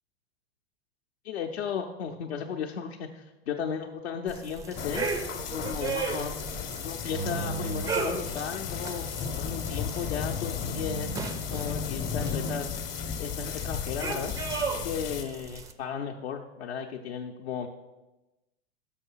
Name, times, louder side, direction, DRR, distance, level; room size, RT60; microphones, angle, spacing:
voice 1, 1.2-5.1 5.5-6.3 6.8-9.1 9.4-11.1 11.5-12.7 13.2-14.3 14.8-17.7, left 7 dB, 70° left, 2 dB, 0.6 m, -35 dB
sound 1, 4.3-15.7, right 5 dB, 10° right, 0.3 m, -37 dB
sound 2, 4.8-15.2, left 7 dB, 40° left, 0.8 m, -34 dB
sound 3, 7.0-9.0 10.0-11.5, right 7 dB, 65° right, 0.5 m, -40 dB
6.5 x 5.5 x 5.5 m, 1.0 s
hypercardioid pair, 95°, 33 cm